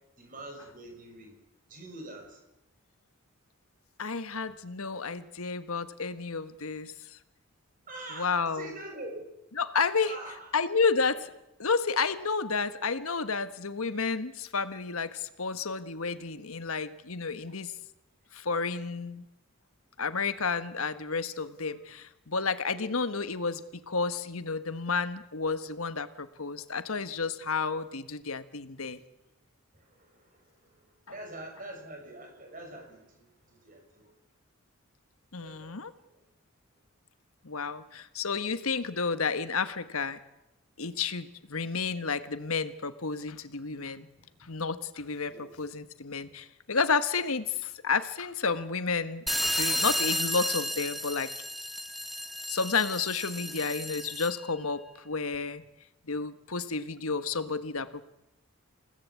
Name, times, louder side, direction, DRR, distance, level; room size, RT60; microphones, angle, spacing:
voice 1, 0.2-1.3 1.7-2.4 7.9-9.2 10.0-10.5 22.7-23.0 29.7-34.1 35.4-35.8 44.2-44.3 45.3-45.5 46.3-46.4, right 2 dB, 35° right, 3 dB, 6.0 m, -45 dB
voice 2, 4.0-7.2 8.2-8.7 9.6-10.1 10.5-11.3 11.6-17.7 18.3-19.2 20.0-29.0 35.3-35.9 37.4-40.2 40.8-44.1 44.4-51.3 52.5-55.6 56.1-58.0, left 4 dB, 75° left, 12 dB, 1.3 m, -31 dB
sound 1, 49.3-54.5, equal, ahead, 1.2 m, -32 dB
28.5 x 18.0 x 8.4 m, 0.90 s
head